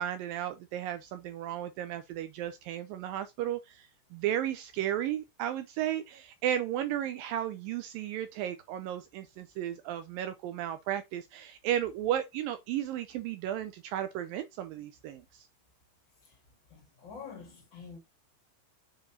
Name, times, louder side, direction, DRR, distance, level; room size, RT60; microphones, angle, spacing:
voice 1, 0.0-15.5, right 11 dB, 85° right, 2.0 m, -34 dB
voice 2, 16.7-18.0, left 5 dB, 45° left, 1.6 m, -47 dB
7.4 x 4.8 x 2.7 m
omnidirectional pair, 4.7 m